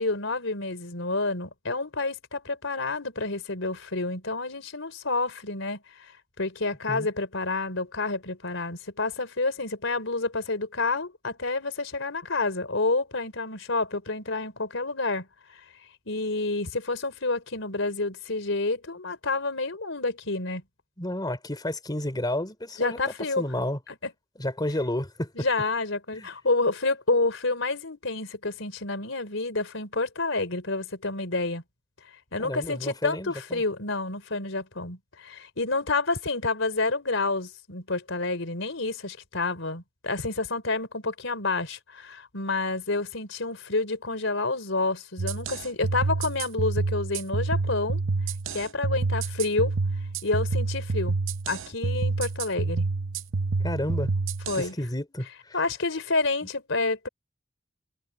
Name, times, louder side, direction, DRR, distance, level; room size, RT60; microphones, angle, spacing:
voice 1, 0.0-6.1 6.4-15.3 15.5-15.6 16.1-20.6 22.8-23.4 25.4-31.6 32.3-48.0 48.5-49.7 50.2-51.2 51.5-52.9 54.5-54.7 55.5-57.1, left 3 dB, 75° left, 4.1 m, -29 dB
voice 2, 21.0-23.8 24.4-25.5 26.1-26.3 32.4-33.6 53.6-54.1 54.5-55.6, left 1 dB, 20° left, 3.1 m, -31 dB
sound 1, 45.2-54.7, right 3 dB, 75° right, 0.8 m, -28 dB
head